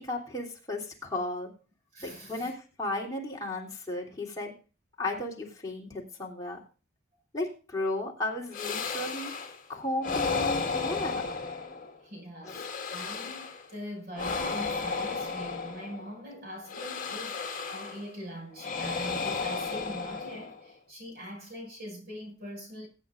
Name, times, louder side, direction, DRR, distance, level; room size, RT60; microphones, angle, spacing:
voice 1, 0.0-1.5 2.0-4.5 5.0-6.6 7.3-9.3 9.7-11.3 12.4-12.6, left 2 dB, 20° left, 3.3 m, -34 dB
voice 2, 1.9-2.5 12.0-22.9, equal, 55° right, 6.1 m, -43 dB
sound 1, 8.5-9.6 10.0-12.0 12.4-13.7 14.1-16.1 16.7-18.1 18.6-20.7, left 4 dB, 45° left, 1.9 m, -33 dB
21.0 x 9.0 x 2.6 m
head